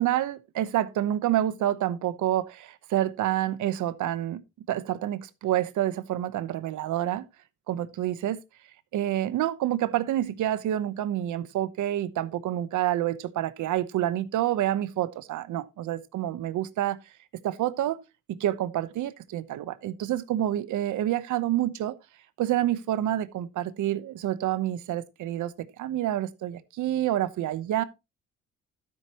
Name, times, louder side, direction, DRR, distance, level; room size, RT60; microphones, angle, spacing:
voice 1, 0.0-4.4 4.7-7.2 7.7-8.4 8.9-17.0 17.4-18.0 18.3-21.9 22.4-27.8, right 12 dB, 80° right, 1.0 m, -28 dB
12.5 x 7.9 x 3.0 m
cardioid pair, 90°, 30 cm